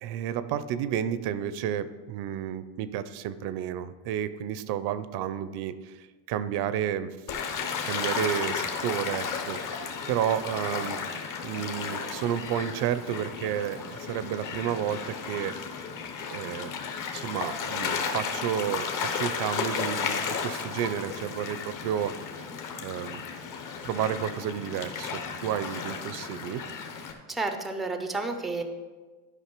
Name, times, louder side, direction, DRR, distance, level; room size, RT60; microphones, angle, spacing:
voice 1, 0.0-7.2 7.8-11.0 11.4-15.5 16.3-16.7 17.1-22.1 22.8-23.2 23.8-26.6, right 10 dB, 60° right, 14 dB, 0.6 m, -31 dB
Gull seagull / Waves surf, 7.3-27.1, left 6 dB, 45° left, 1.1 m, -34 dB
voice 2, 27.3-28.6, right 3 dB, ahead, 6 dB, 0.4 m, -31 dB
11.5 x 5.3 x 4.5 m, 1.3 s
cardioid pair, 145°, 45 cm